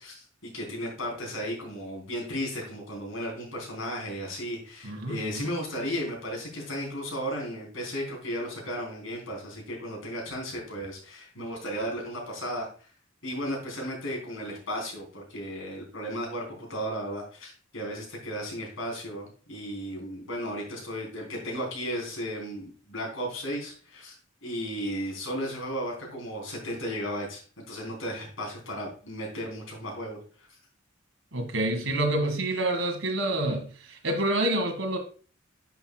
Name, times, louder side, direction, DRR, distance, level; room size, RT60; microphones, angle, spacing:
voice 1, 0.0-12.9 13.2-24.1 24.4-30.5, equal, 85° left, 0 dB, 3.5 m, -35 dB
voice 2, 4.8-5.4 31.3-35.0, right 1 dB, 85° right, 5 dB, 1.7 m, -28 dB
10.5 x 6.0 x 2.3 m, 0.40 s
head